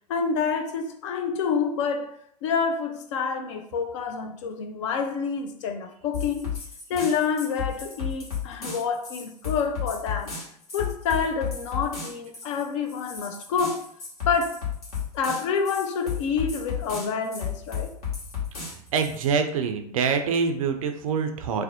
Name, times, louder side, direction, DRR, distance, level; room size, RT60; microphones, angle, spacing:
voice 1, 0.1-2.1 2.4-6.5 6.9-10.4 10.7-13.8 14.3-14.6 15.1-17.9, left 6 dB, 50° left, 0.4 m, -28 dB
sound 1, 6.1-19.3, left 7 dB, 65° left, 1.2 m, -33 dB
voice 2, 18.9-21.6, right 6 dB, 55° right, 0.4 m, -25 dB
2.5 x 2.0 x 2.6 m
figure-of-eight pair, 90°, 20 cm